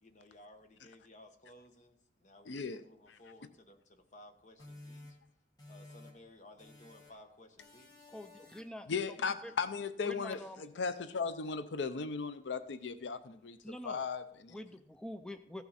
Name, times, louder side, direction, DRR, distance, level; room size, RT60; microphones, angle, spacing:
voice 1, 0.0-5.2 5.7-8.1, left 1 dB, 40° left, 1.0 m, -58 dB
voice 2, 2.5-2.8 3.1-3.2 8.9-14.6, left 5 dB, 80° left, 0.5 m, -37 dB
sound 1, 4.6-6.3 6.6-7.3 7.6-8.9, left 2 dB, 20° left, 1.5 m, -54 dB
voice 3, 8.1-9.2 9.4-9.5 10.1-10.6 13.6-14.1 14.5-15.6, left 1 dB, 5° left, 0.3 m, -46 dB
15.0 x 5.9 x 4.1 m
head